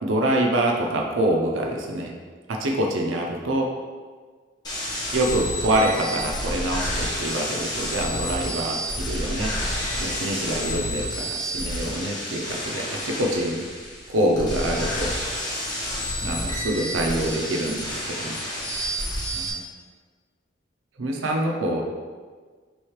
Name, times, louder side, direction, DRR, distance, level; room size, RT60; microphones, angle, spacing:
voice 1, 0.0-2.1 2.5-3.7 5.1-9.5 10.0-13.6 14.1-15.2 16.2-18.4 19.3-19.6 21.0-21.8, right 1 dB, 85° right, 0 dB, 0.6 m, -25 dB
sound 1, 4.6-19.5, equal, 20° left, 1.1 m, -29 dB
3.2 x 3.1 x 4.7 m, 1.5 s
head